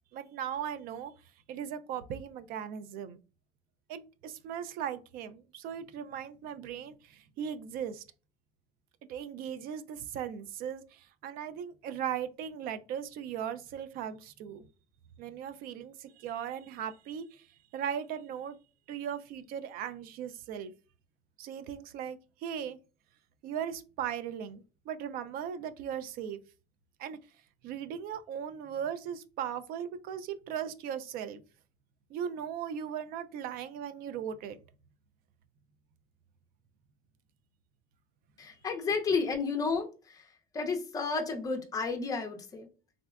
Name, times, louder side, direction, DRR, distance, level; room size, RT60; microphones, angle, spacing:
voice 1, 0.1-1.1 1.5-3.2 3.9-8.0 9.1-14.6 15.2-17.5 17.7-18.6 18.9-20.7 21.4-22.8 23.4-26.4 27.0-27.2 27.6-31.4 32.1-34.6, right 8 dB, 65° right, 0.4 m, -38 dB
voice 2, 38.4-42.7, left 4 dB, 20° left, 0.5 m, -32 dB
3.6 x 2.1 x 2.3 m
cardioid pair, 155°, 16 cm